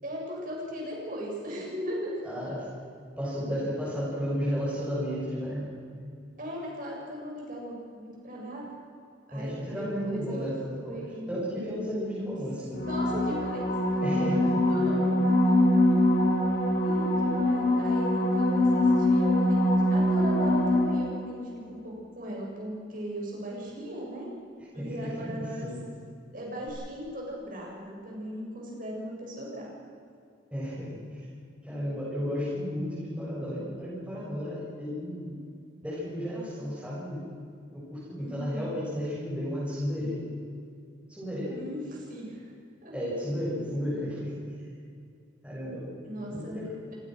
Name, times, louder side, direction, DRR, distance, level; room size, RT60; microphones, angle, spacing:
voice 1, 0.0-2.2 3.4-3.6 6.4-8.7 9.3-10.5 10.8-11.4 12.9-13.7 14.7-15.1 15.4-16.0 16.8-21.4 21.7-24.3 24.7-25.7 26.3-29.7 38.2-38.8 41.5-42.5 42.8-42.9 46.0-46.6, equal, 45° right, -2 dB, 7.9 m, -38 dB
voice 2, 2.2-2.7 3.2-5.7 9.3-12.9 14.0-14.6 24.8-25.8 30.5-31.3 31.6-35.4 35.8-37.2 37.7-40.2 41.1-41.6 42.9-44.4 45.4-45.9 46.3-46.8, equal, 5° right, -9 dB, 7.5 m, -33 dB
sound 1, 12.7-21.3 26.7-26.8, left 1 dB, 50° left, 6.5 m, -24 dB
28.0 x 18.0 x 6.5 m, 2.3 s
head